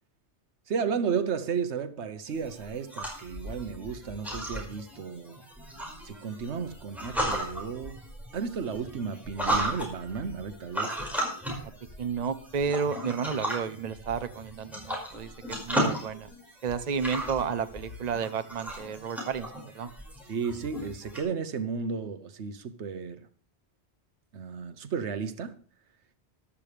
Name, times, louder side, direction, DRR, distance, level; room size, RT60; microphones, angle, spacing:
voice 1, 0.7-5.4 6.0-8.0 8.3-11.0 20.3-23.3 24.3-25.6, right 6 dB, 85° right, 1.2 m, -33 dB
sound 1, 2.3-21.2, equal, ahead, 5.2 m, -35 dB
voice 2, 12.0-15.3 15.6-16.3 16.6-19.9, right 6 dB, 40° right, 0.8 m, -31 dB
14.0 x 12.0 x 3.4 m
omnidirectional pair, 1.1 m